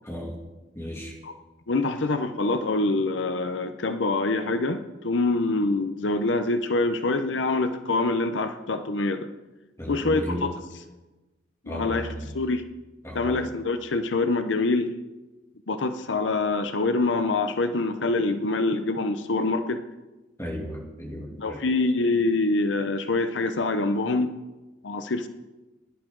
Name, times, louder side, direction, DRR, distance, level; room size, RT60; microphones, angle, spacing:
voice 1, 0.0-0.4 0.7-1.2 9.8-10.5 11.6-12.4 13.0-13.5 20.4-21.7, equal, 15° left, -2 dB, 2.6 m, -35 dB
voice 2, 1.7-9.3 9.9-10.2 11.6-12.1 12.3-12.6 13.1-14.9 15.7-19.8 21.4-24.3 24.8-25.3, left 3 dB, 90° left, 9 dB, 0.7 m, -25 dB
17.0 x 10.5 x 3.8 m, 1.1 s
head